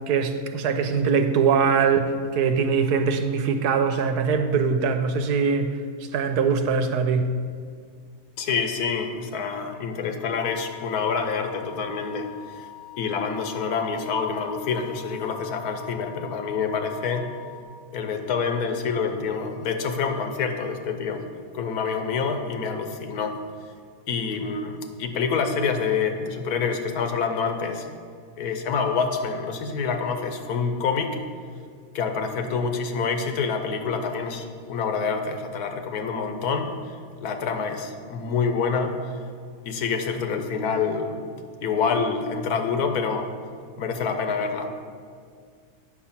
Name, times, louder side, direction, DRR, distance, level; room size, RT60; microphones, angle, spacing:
voice 1, 0.1-5.7 6.1-7.3, right 5 dB, 85° right, 7 dB, 1.3 m, -22 dB
voice 2, 8.4-12.7 13.0-17.3 17.9-21.2 21.5-23.4 24.1-27.9 28.4-31.2 31.9-36.7 37.2-39.2 39.7-41.2 41.6-43.3 43.8-44.7, left 5 dB, 75° left, 6 dB, 1.3 m, -27 dB
sound 1, 10.4-17.6, left 13 dB, 50° left, 1.0 m, -44 dB
8.8 x 6.3 x 5.7 m, 2.1 s
omnidirectional pair, 1.6 m